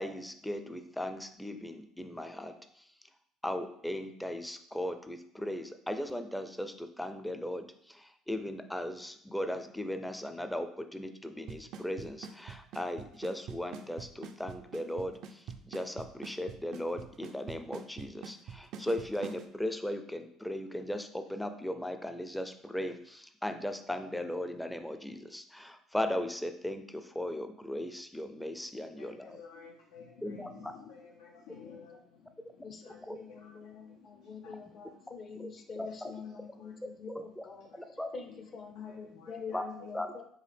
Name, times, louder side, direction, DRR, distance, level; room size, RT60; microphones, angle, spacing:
voice 1, 0.0-2.9 3.4-29.4 30.2-30.7 33.1-33.2 35.3-35.5 35.8-36.1 37.1-37.4 37.7-38.1 39.5-39.6 39.9-40.1, left 1 dB, 5° left, 8 dB, 0.4 m, -37 dB
Drum kit / Snare drum / Bass drum, 11.5-19.4, right 7 dB, 65° right, 0.4 m, -43 dB
voice 2, 28.7-35.5 35.9-36.0 36.2-36.8 37.6-37.9 38.3-38.4 38.8-39.9, left 5 dB, 85° left, 1 dB, 0.5 m, -54 dB
voice 3, 31.6-32.2 32.6-37.7 38.1-40.2, left 5 dB, 50° left, 5 dB, 0.7 m, -46 dB
4.8 x 2.5 x 3.4 m, 0.67 s
supercardioid pair, 75°, 0 cm